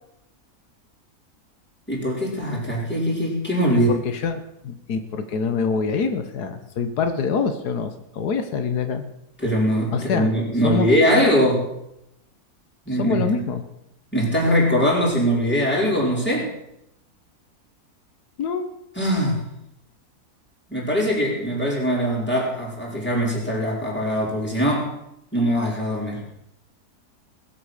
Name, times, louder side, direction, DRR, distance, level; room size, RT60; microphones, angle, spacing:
voice 1, 1.9-3.9 9.4-11.7 12.9-13.2 14.1-16.5 19.0-19.4 20.7-24.9 25.3-26.2, equal, 5° left, -4 dB, 4.9 m, -21 dB
voice 2, 3.7-9.0 9.9-10.3 10.6-10.9 12.9-13.6 18.4-18.7, left 5 dB, 90° left, 8 dB, 1.7 m, -25 dB
20.0 x 8.6 x 6.5 m, 0.81 s
omnidirectional pair, 1.6 m